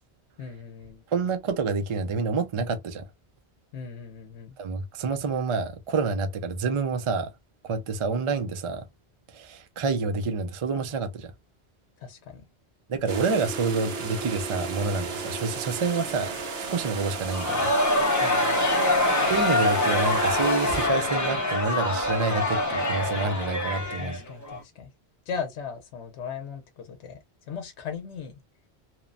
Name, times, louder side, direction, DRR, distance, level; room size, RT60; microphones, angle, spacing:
voice 1, 0.4-1.0 3.7-4.5 12.0-12.4 18.2-18.9 23.9-24.9 25.3-27.2 27.5-28.4, left 6 dB, 90° left, 0.9 m, -38 dB
voice 2, 1.1-3.0 4.6-7.3 7.6-8.8 9.3-11.3 12.9-16.3 16.7-17.7 19.3-24.2, right 4 dB, 50° right, 0.3 m, -28 dB
sound 1, 13.1-21.1, right 4 dB, 65° right, 1.0 m, -34 dB
Crowd, 17.3-24.6, left 2 dB, 20° left, 0.6 m, -25 dB
2.9 x 2.1 x 2.4 m
omnidirectional pair, 1.1 m